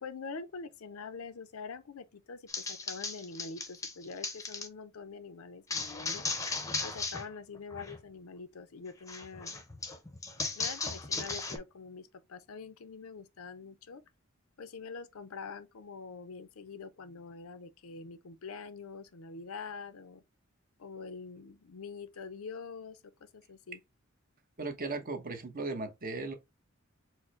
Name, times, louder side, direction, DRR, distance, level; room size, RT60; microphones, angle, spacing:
voice 1, 0.0-6.3 6.8-9.6 10.5-14.1 14.6-20.2 20.8-23.8, left 5 dB, 80° left, 0.6 m, -45 dB
sound 1, 2.5-4.7 5.7-7.3 7.5-8.0 9.1-11.6, left 3 dB, 15° left, 0.7 m, -36 dB
voice 2, 24.6-26.3, right 3 dB, 45° right, 1.0 m, -37 dB
4.6 x 2.1 x 4.3 m
head